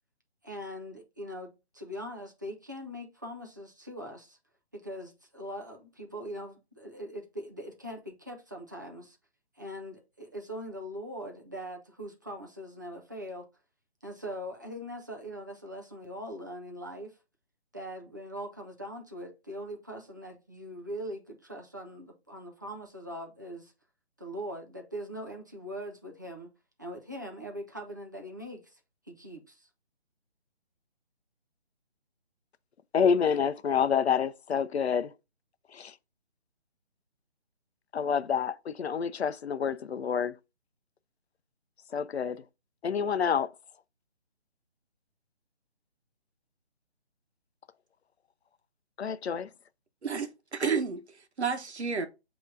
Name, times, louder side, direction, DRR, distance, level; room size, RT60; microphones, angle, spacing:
voice 1, 0.4-4.4 4.7-9.2 9.6-13.5 14.0-17.2 17.7-23.7 24.2-26.5 26.8-28.8 29.1-29.7, equal, 20° right, 0.5 m, -41 dB
voice 2, 32.9-35.1 35.7-35.9 37.9-40.3 41.9-42.4 42.8-43.5 49.0-49.5, left 7 dB, 70° left, 0.5 m, -28 dB
voice 3, 50.0-52.1, right 5 dB, 80° right, 1.0 m, -31 dB
7.1 x 2.9 x 2.6 m
figure-of-eight pair, 155°, 33 cm